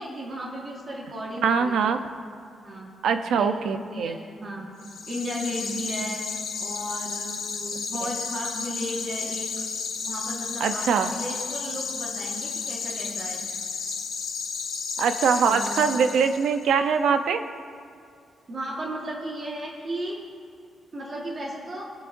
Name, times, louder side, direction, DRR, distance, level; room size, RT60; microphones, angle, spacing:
voice 1, 0.0-2.0 2.6-2.9 3.4-4.7 5.1-6.3 6.6-9.6 10.0-13.4 15.4-15.8 18.5-20.2 20.9-21.8, equal, 30° right, -4 dB, 1.6 m, -35 dB
voice 2, 1.4-2.0 3.0-4.2 8.0-8.1 10.6-11.1 15.0-17.4, right 6 dB, 70° right, 8 dB, 0.7 m, -23 dB
sound 1, 4.8-16.6, left 5 dB, 65° left, 1.4 m, -33 dB
25.5 x 8.8 x 2.7 m, 2.3 s
wide cardioid pair, 175°, 0 cm